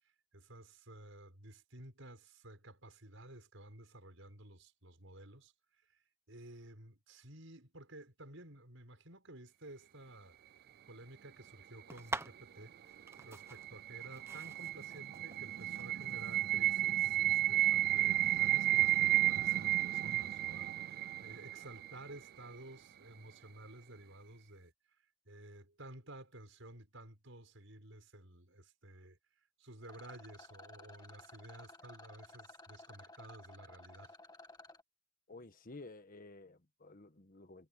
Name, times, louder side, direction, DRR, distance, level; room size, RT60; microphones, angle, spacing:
voice 1, 0.3-5.5 5.9-10.4 10.9-12.8 13.2-24.7 25.3-29.2 29.6-34.2, right 1 dB, 80° right, 5.7 m, -54 dB
sound 1, 11.9-19.6, right 2 dB, 15° right, 1.3 m, -49 dB
sound 2, 13.2-22.2, right 14 dB, 50° right, 0.4 m, -32 dB
Rattle, 29.8-34.8, left 2 dB, 20° left, 1.9 m, -55 dB
voice 2, 35.3-37.7, left 2 dB, 45° left, 1.4 m, -53 dB
head